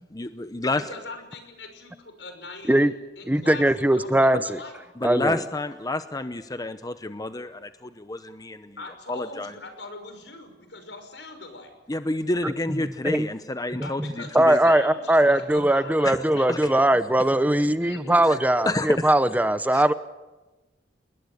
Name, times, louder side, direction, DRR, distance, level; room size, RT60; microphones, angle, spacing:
voice 1, 0.1-0.8 4.3-4.4 5.0-8.8 9.1-9.5 11.9-14.6 16.0-16.7 18.3-18.4 18.6-19.1 19.7-19.8, left 2 dB, 20° left, 10 dB, 0.8 m, -29 dB
voice 2, 0.8-3.7 3.9-4.8 8.8-11.7 13.8-16.5 17.2-17.3 17.8-18.3, left 2 dB, 80° left, 7 dB, 5.9 m, -41 dB
voice 3, 3.3-4.6 5.0-5.4 12.4-12.5 13.0-13.3 13.8-14.1 14.3-19.9, right 1 dB, 10° right, 12 dB, 0.8 m, -20 dB
28.5 x 20.5 x 8.1 m, 1.1 s
head